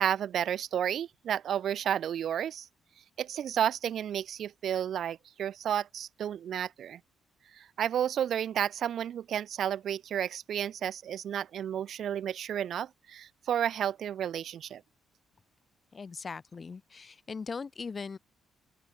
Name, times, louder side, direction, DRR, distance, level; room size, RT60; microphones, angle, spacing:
voice 1, 0.0-2.7 3.2-7.0 7.5-14.8, right 9 dB, 65° right, 0.5 m, -32 dB
voice 2, 15.9-18.2, left 5 dB, 35° left, 2.7 m, -39 dB
open air
cardioid pair, 90°, 0 cm